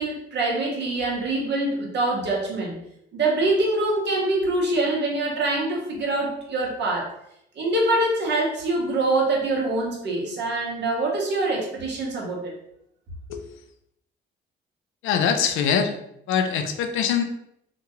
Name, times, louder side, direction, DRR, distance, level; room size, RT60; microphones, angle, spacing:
voice 1, 0.0-2.7 3.1-7.1 7.6-12.5, right 2 dB, 60° right, -2 dB, 1.0 m, -24 dB
voice 2, 15.0-15.9 16.3-17.2, left 7 dB, 85° left, 6 dB, 0.4 m, -23 dB
2.9 x 2.2 x 2.9 m, 0.76 s
cardioid pair, 90°, 20 cm